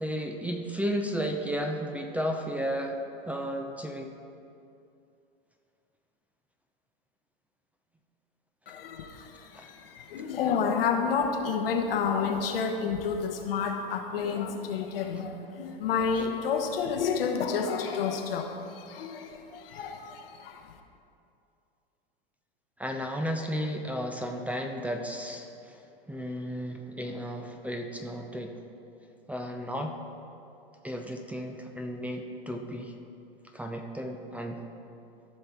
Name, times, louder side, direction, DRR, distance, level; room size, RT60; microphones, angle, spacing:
voice 1, 0.0-3.0 3.3-4.1 9.5-9.6 22.8-25.8 26.1-28.6 29.3-29.9 30.8-32.9 33.5-34.6, equal, 5° right, 3 dB, 0.6 m, -33 dB
voice 2, 8.7-20.7, left 6 dB, 70° left, 4 dB, 1.1 m, -30 dB
15.0 x 5.6 x 3.5 m, 2.6 s
hypercardioid pair, 100°, 29 cm